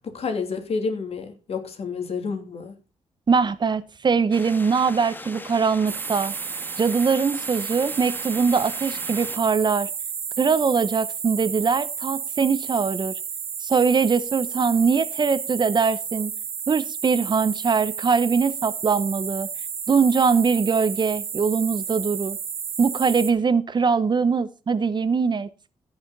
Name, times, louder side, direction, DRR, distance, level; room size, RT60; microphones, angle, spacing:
voice 1, 0.0-2.7, left 5 dB, 60° left, 3.0 m, -29 dB
voice 2, 3.3-6.3 6.8-9.9 10.4-13.1 13.6-16.3 16.7-19.5 19.9-22.4 22.8-25.5, right 5 dB, 40° right, 0.8 m, -22 dB
sound 1, 4.3-9.4, left 2 dB, 15° left, 1.5 m, -40 dB
sound 2, 5.9-23.3, right 7 dB, 60° right, 1.7 m, -32 dB
16.0 x 6.4 x 4.0 m
cardioid pair, 100°, 12 cm